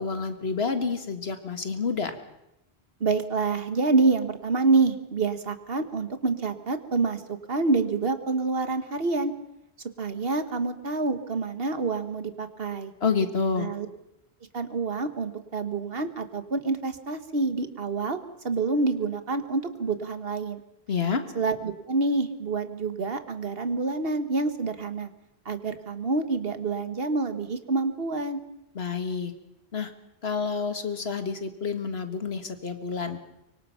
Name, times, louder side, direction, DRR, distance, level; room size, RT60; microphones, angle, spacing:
voice 1, 0.0-2.2 13.0-13.7 20.9-21.2 28.8-29.3 29.7-29.9 30.2-33.2, left 5 dB, 75° left, 7 dB, 2.0 m, -28 dB
voice 2, 3.0-9.3 10.0-12.9 13.6-13.9 14.5-18.2 18.4-20.6 21.3-25.1 25.4-28.4, right 3 dB, 65° right, 9 dB, 1.6 m, -27 dB
24.0 x 23.5 x 5.7 m, 0.87 s
omnidirectional pair, 1.1 m